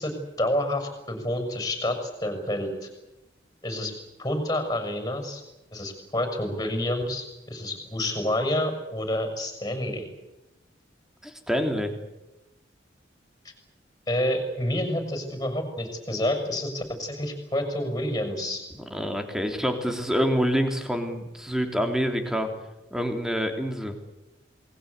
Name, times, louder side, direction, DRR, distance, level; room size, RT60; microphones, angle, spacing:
voice 1, 0.0-2.9 3.6-3.9 4.2-5.4 5.7-10.1 14.1-18.6, left 1 dB, 20° left, 7 dB, 6.6 m, -28 dB
voice 2, 11.2-11.9 18.9-22.5 22.9-23.9, equal, 5° right, 5 dB, 3.3 m, -26 dB
28.5 x 21.0 x 8.3 m, 0.98 s
head